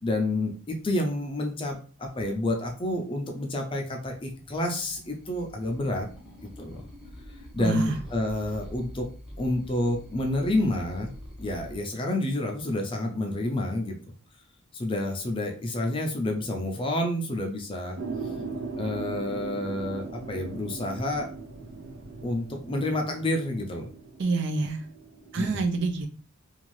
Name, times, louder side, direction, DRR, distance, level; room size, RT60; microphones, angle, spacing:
voice 1, 0.0-6.1 6.4-6.8 7.5-9.1 9.4-11.1 11.4-14.0 14.7-18.0 18.8-21.3 22.2-23.9 25.4-25.6, left 1 dB, 25° left, 0.5 m, -29 dB
sound 1, 4.1-11.7, equal, ahead, 0.8 m, -45 dB
voice 2, 7.6-8.0 24.2-24.8 25.3-26.1, right 3 dB, 55° right, 0.4 m, -27 dB
sound 2, 18.0-25.4, right 4 dB, 85° right, 0.8 m, -39 dB
2.6 x 2.4 x 3.1 m
head